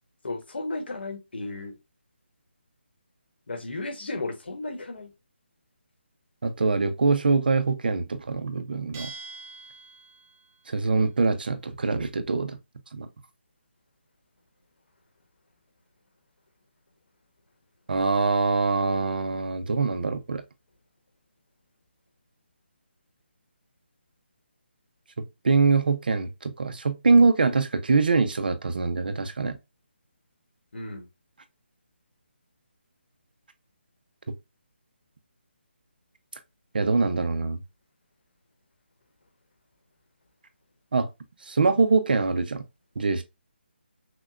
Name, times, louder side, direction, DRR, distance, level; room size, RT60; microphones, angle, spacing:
voice 1, 0.2-1.7 3.5-5.1 30.7-31.0, left 2 dB, 60° left, 1.0 m, -34 dB
voice 2, 6.4-9.1 10.7-12.6 12.9-13.1 17.9-20.4 25.4-29.6 36.7-37.6 40.9-41.1 41.5-42.6 43.0-43.2, right 4 dB, 55° right, 0.5 m, -23 dB
Bell, 8.9-10.5, right 4 dB, 15° right, 0.7 m, -43 dB
6.0 x 2.2 x 2.3 m
hypercardioid pair, 175°, 6 cm